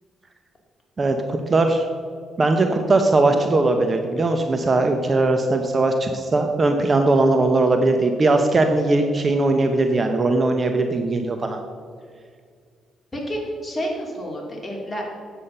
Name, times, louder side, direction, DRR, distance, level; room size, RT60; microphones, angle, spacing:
voice 1, 1.0-1.8 2.4-11.6, right 2 dB, 35° right, 5 dB, 0.7 m, -19 dB
voice 2, 13.1-15.1, equal, 15° left, -2 dB, 2.7 m, -29 dB
8.5 x 7.4 x 5.4 m, 2.1 s
cardioid pair, 90°, 0 cm